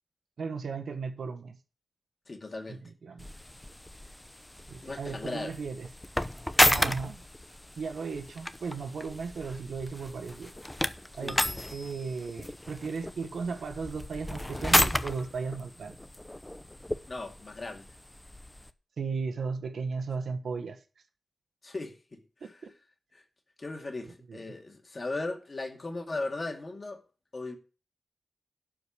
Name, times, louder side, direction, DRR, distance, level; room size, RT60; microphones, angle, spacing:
voice 1, 0.4-1.6 2.7-3.3 4.7-5.9 6.7-7.2 7.8-10.5 11.1-11.4 11.7-16.0 19.0-20.8 24.3-24.4, right 5 dB, 85° right, 1.3 m, -36 dB
voice 2, 2.3-2.8 4.8-5.6 11.2-11.7 17.1-17.9 21.6-22.7 23.1-23.2 23.6-27.0 27.3-27.6, left 2 dB, 40° left, 2.3 m, -37 dB
sound 1, 3.2-18.7, left 1 dB, 10° left, 0.7 m, -32 dB
12.0 x 5.1 x 8.6 m
wide cardioid pair, 100°, 0 cm